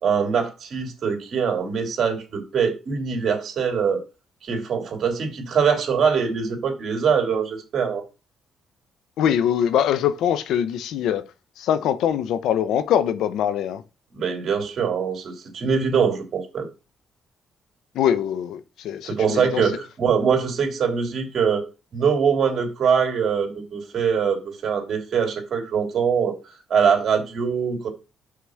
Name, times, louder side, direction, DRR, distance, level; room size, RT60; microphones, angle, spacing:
voice 1, 0.0-4.0 4.4-8.0 14.1-16.7 19.0-21.7 21.9-26.3 26.7-27.9, right 6 dB, 55° right, 2.9 m, -23 dB
voice 2, 9.2-11.3 11.6-13.8 17.9-19.6, left 9 dB, 85° left, 0.8 m, -23 dB
5.9 x 4.7 x 6.4 m
cardioid pair, 90°, 0 cm